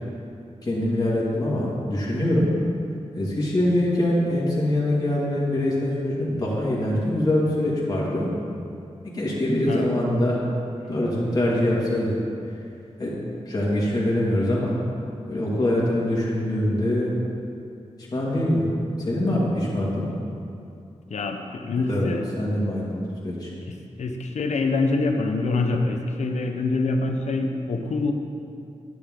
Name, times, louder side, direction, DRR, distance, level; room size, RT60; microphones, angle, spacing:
voice 1, 0.6-2.5 3.1-8.3 9.1-10.4 10.9-12.1 13.0-13.2 13.5-14.7 15.3-17.1 18.1-18.6 19.0-20.1 21.9-22.1 22.4-23.5, left 1 dB, 35° left, -6 dB, 2.0 m, -23 dB
voice 2, 21.1-22.2 24.0-28.1, left 3 dB, 75° left, 4 dB, 0.8 m, -25 dB
10.0 x 8.0 x 3.7 m, 2.5 s
wide cardioid pair, 105°, 12 cm